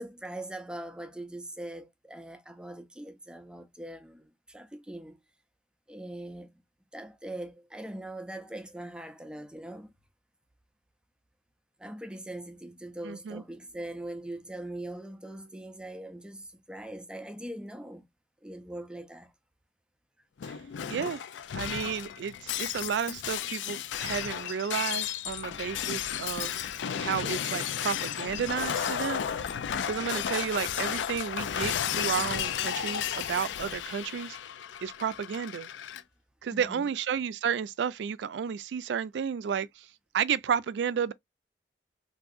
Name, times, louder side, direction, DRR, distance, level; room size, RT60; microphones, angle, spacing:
voice 1, 0.0-5.2 5.9-6.6 6.9-9.9 11.8-18.1 18.4-19.3 30.3-30.5 36.5-36.8, right 1 dB, 5° right, 0.4 m, -41 dB
voice 2, 13.0-13.4 20.5-20.6 20.9-21.2 21.5-26.6 27.0-29.3 29.9-34.4 34.8-35.7 36.4-39.9 40.1-41.1, right 7 dB, 70° right, 0.3 m, -32 dB
Shatter, 20.4-36.0, left 9 dB, 85° left, 0.4 m, -33 dB
3.6 x 2.6 x 2.4 m
head